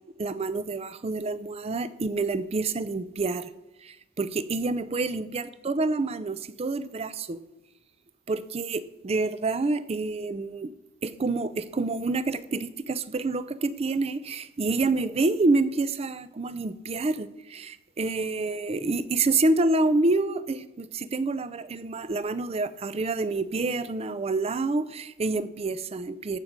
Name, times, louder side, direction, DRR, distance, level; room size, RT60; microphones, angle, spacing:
voice 1, 0.2-3.5 3.8-7.4 8.3-10.7 11.0-26.4, right 3 dB, 30° right, 15 dB, 0.4 m, -28 dB
14.5 x 6.0 x 5.1 m, 0.97 s
head